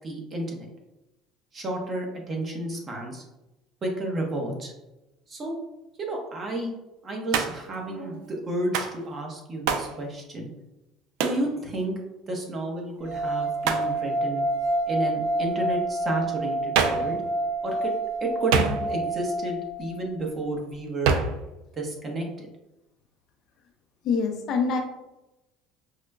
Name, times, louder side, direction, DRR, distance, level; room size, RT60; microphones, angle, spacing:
voice 1, 0.0-0.7 1.5-3.2 3.8-4.7 5.3-5.5 6.0-6.7 7.0-10.5 11.2-11.9 12.3-14.4 14.9-17.2 17.6-17.9 18.2-21.2 21.7-22.5, right 1 dB, 30° right, 1 dB, 0.7 m, -31 dB
Hands, 7.3-7.7 8.7-9.0 9.7-9.9 11.2-11.5 13.6-13.9 16.7-17.1 18.5-19.1 21.0-21.4, right 5 dB, 80° right, 0.3 m, -25 dB
sound 1, 13.0-20.1, right 2 dB, 65° right, 0.9 m, -28 dB
voice 2, 24.0-24.8, left 5 dB, 50° left, 3 dB, 0.5 m, -25 dB
4.8 x 2.1 x 2.2 m, 0.97 s
cardioid pair, 130°, 0 cm